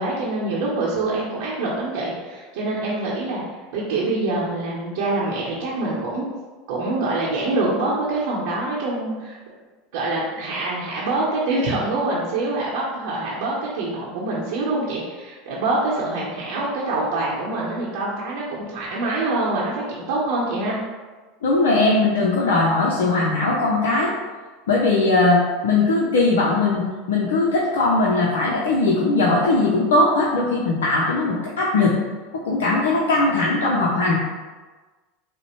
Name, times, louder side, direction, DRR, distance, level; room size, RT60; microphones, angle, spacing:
voice 1, 0.0-3.4 3.7-6.3 6.7-9.4 9.9-20.8, right 2 dB, 70° right, -7 dB, 0.8 m, -25 dB
voice 2, 21.4-24.1 24.7-32.0 32.4-34.2, left 2 dB, 80° left, -4 dB, 0.5 m, -19 dB
5.0 x 2.1 x 3.0 m, 1.3 s
hypercardioid pair, 95°, 0 cm